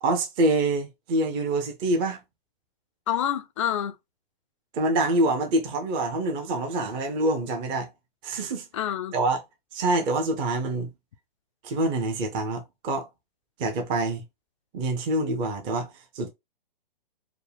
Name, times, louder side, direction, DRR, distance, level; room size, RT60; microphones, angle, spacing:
voice 1, 0.0-2.2 4.7-7.9 8.2-8.7 9.1-9.4 9.7-10.9 11.6-13.1 13.6-14.2 14.7-16.3, right 2 dB, 15° right, 0.6 m, -26 dB
voice 2, 3.1-3.9 8.7-9.2, left 10 dB, 35° left, 0.4 m, -27 dB
4.7 x 2.1 x 3.4 m
hypercardioid pair, 155°, 29 cm